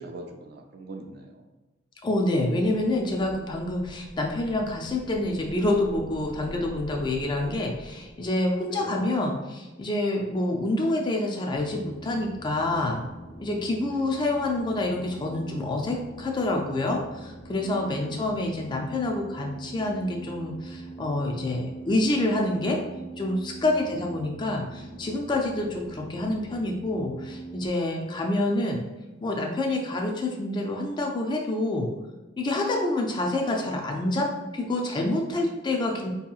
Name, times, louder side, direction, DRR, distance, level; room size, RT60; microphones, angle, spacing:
voice 1, 0.0-1.4 8.6-9.0 13.9-14.1 17.9-18.2 23.8-24.1, right 2 dB, 50° right, 3 dB, 0.4 m, -41 dB
voice 2, 2.0-13.0 13.4-22.8 23.2-28.8 29.2-31.9 32.4-34.3 34.5-36.1, left 2 dB, 25° left, 1 dB, 0.3 m, -27 dB
sound 1, 2.3-8.6, equal, 40° left, 0.8 m, -45 dB
sound 2, 11.6-27.7, right 3 dB, 65° left, 1.4 m, -43 dB
4.5 x 2.8 x 2.3 m, 1.1 s
head